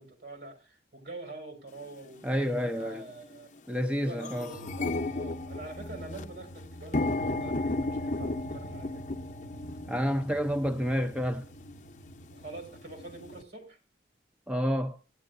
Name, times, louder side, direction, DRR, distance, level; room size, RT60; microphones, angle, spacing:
voice 1, 0.0-3.5 4.0-9.1 12.3-13.8, right 2 dB, 65° right, 4.9 m, -45 dB
sound 1, 1.8-1.9 2.7-2.9 3.3-3.4 3.7-13.4, left 2 dB, 45° left, 0.7 m, -35 dB
voice 2, 2.2-3.1 3.7-4.5 9.9-11.5 14.5-15.0, equal, 5° right, 0.5 m, -29 dB
18.0 x 10.5 x 2.6 m
head